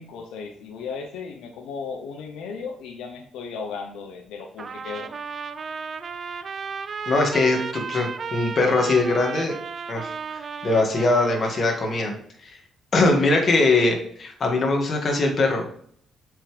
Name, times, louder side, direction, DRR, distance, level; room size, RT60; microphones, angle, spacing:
voice 1, 0.0-5.1, left 5 dB, 85° left, 3 dB, 0.9 m, -35 dB
Trumpet, 4.6-12.0, right 5 dB, 45° right, 0.6 m, -34 dB
voice 2, 7.1-9.5 9.9-12.1 12.4-12.6 12.9-15.7, left 2 dB, 45° left, 1 dB, 2.2 m, -21 dB
7.2 x 5.6 x 3.5 m, 0.63 s
cardioid pair, 90°, 0 cm